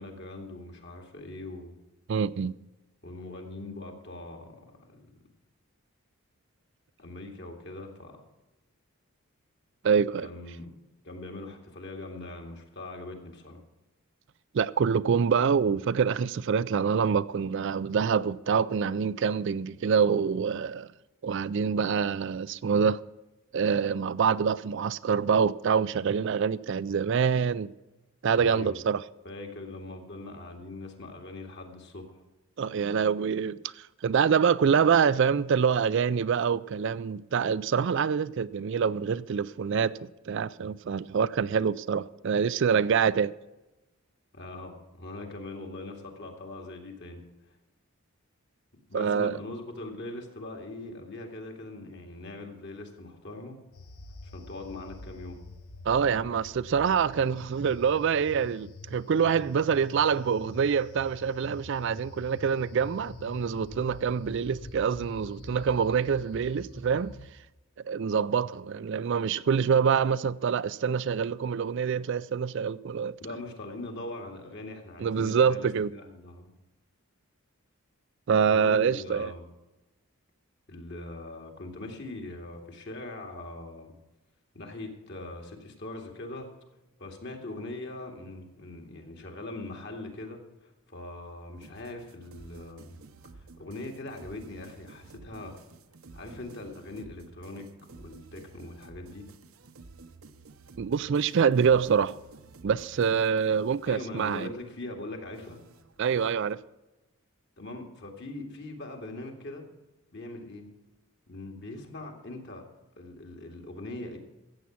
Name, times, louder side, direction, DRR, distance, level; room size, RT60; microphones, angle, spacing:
voice 1, 0.0-1.8 3.0-4.6 4.8-5.1 7.0-8.2 10.2-10.7 11.0-13.6 28.4-28.8 29.2-32.2 44.3-47.2 48.9-53.6 54.2-55.4 73.2-76.5 78.5-79.5 80.7-83.9 84.5-86.5 87.0-93.0 93.3-95.6 96.1-99.3 103.9-105.6 107.6-109.7 110.1-110.7 111.3-112.6 113.0-114.2, left 2 dB, 50° left, 2.2 m, -41 dB
voice 2, 2.1-2.6 9.8-10.3 14.5-20.9 21.2-23.0 23.5-27.7 28.2-29.0 32.6-39.9 40.3-43.3 48.9-49.4 55.9-67.1 67.9-73.1 75.0-75.9 78.3-79.3 100.8-102.2 102.6-104.5 106.0-106.6, right 6 dB, 55° right, 0.3 m, -26 dB
sound 1, 53.7-67.3, left 2 dB, 75° left, 1.1 m, -46 dB
sound 2, 91.6-106.5, right 3 dB, 70° right, 0.8 m, -52 dB
14.5 x 8.3 x 5.9 m
head